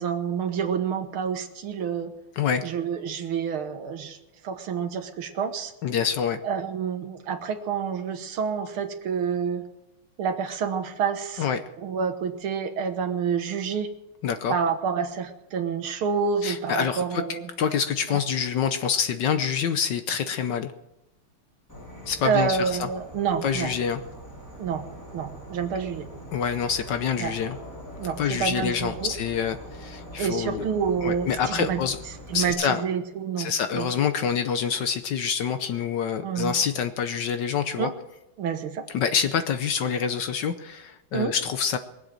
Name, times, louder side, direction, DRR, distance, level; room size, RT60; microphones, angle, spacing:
voice 1, 0.0-2.1 2.6-4.2 4.4-5.7 6.4-9.6 10.2-11.5 11.8-13.9 14.5-17.5 18.1-18.2 22.2-23.8 24.6-24.9 25.1-26.1 27.2-27.3 28.0-29.1 30.2-31.8 32.3-33.9 36.2-36.5 37.8-37.9 38.4-38.9 41.1-41.3, right 6 dB, 75° right, 7 dB, 2.1 m, -28 dB
voice 2, 2.4-2.7 5.8-6.4 11.4-11.6 14.2-14.5 16.4-20.7 22.1-22.9 23.4-24.0 26.3-27.6 28.2-30.6 31.0-32.0 32.3-32.8 33.4-37.9 38.9-41.8, left 7 dB, 65° left, 10 dB, 1.2 m, -26 dB
Insect / Frog, 21.7-32.5, equal, 10° left, 4.7 m, -42 dB
22.0 x 7.8 x 7.5 m, 0.93 s
omnidirectional pair, 2.4 m